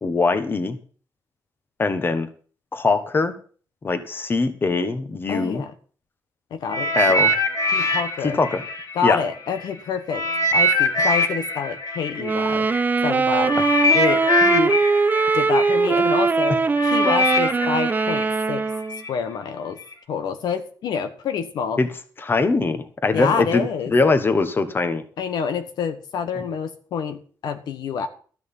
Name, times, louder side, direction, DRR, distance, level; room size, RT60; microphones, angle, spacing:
voice 1, 0.0-0.8 1.8-2.3 2.7-3.3 3.8-5.6 6.9-7.3 8.2-8.6 9.0-9.2 13.5-13.6 21.8-21.9 22.2-25.0, left 3 dB, 30° left, 10 dB, 1.3 m, -21 dB
voice 2, 5.3-5.7 6.5-6.9 7.7-8.4 8.9-10.3 10.5-12.7 13.0-13.5 13.9-14.8 15.3-18.6 19.1-19.8 20.1-21.8 23.1-23.9 25.2-28.1, left 6 dB, 80° left, 8 dB, 1.2 m, -27 dB
sound 1, 6.7-9.6 10.1-19.1 19.8-19.9, left 1 dB, 55° left, 1.8 m, -23 dB
sound 2, 12.2-19.0, right 4 dB, 25° right, 0.5 m, -21 dB
13.0 x 6.2 x 7.1 m, 0.42 s
cardioid pair, 115°, 7 cm